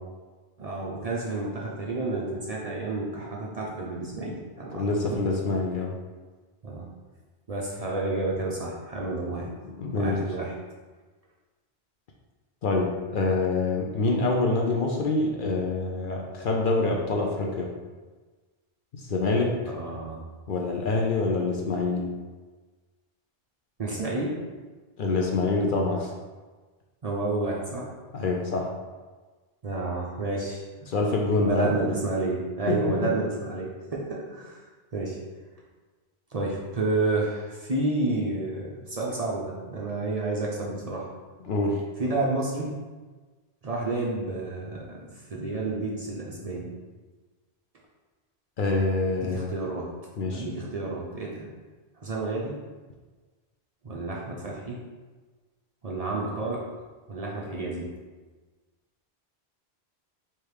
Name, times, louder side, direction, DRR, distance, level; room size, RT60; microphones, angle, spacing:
voice 1, 0.6-5.3 6.6-6.9 7.5-9.5 9.9-10.5 19.6-20.2 23.8-24.4 27.0-27.9 29.6-30.6 31.4-34.6 34.9-35.2 36.3-41.1 42.0-42.7 43.6-46.7 49.1-49.9 50.3-51.5 52.0-52.6 53.8-54.8 55.8-56.6 57.1-57.9, right 2 dB, 45° right, -4 dB, 0.6 m, -30 dB
voice 2, 4.7-5.9 9.8-10.2 12.6-17.7 19.1-19.5 20.5-22.1 25.0-26.1 28.1-28.7 30.9-31.7 32.7-32.9 41.5-41.8 48.6-49.5 50.2-50.4, left 3 dB, 60° left, 0 dB, 0.7 m, -26 dB
3.4 x 2.9 x 4.7 m, 1.3 s
omnidirectional pair, 1.1 m